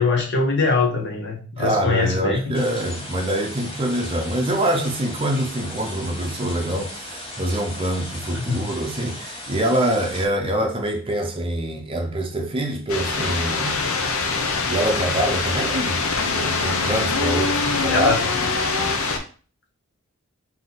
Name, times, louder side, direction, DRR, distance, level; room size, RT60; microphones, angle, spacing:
voice 1, 0.0-2.5 8.3-8.7 17.9-18.2, left 4 dB, 55° left, 0.9 m, -22 dB
voice 2, 1.6-13.8 14.7-18.1, right 1 dB, 25° right, 0.6 m, -25 dB
sound 1, 2.5-10.3, left 1 dB, 25° left, 0.9 m, -36 dB
sound 2, 12.9-19.2, left 4 dB, 75° left, 0.7 m, -23 dB
3.8 x 2.7 x 3.9 m
head